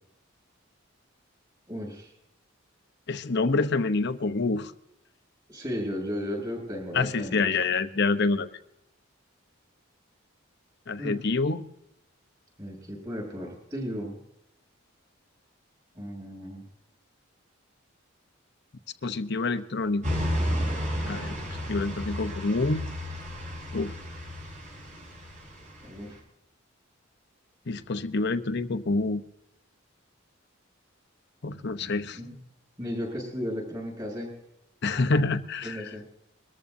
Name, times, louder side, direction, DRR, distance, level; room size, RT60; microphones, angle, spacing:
voice 1, 1.7-2.1 5.5-7.5 11.0-11.2 12.6-14.2 15.9-16.7 25.8-26.1 32.1-32.4 32.8-34.3 35.6-36.0, equal, 20° right, 0 dB, 6.7 m, -35 dB
voice 2, 3.1-4.7 6.9-8.5 10.9-11.6 19.0-20.1 21.1-21.4 21.7-22.9 23.7-24.0 27.7-29.2 31.4-32.2 34.8-35.8, left 3 dB, 55° left, 10 dB, 0.8 m, -27 dB
sound 1, 20.0-26.2, equal, 40° right, 5.3 m, -32 dB
22.5 x 14.0 x 2.7 m, 0.82 s
head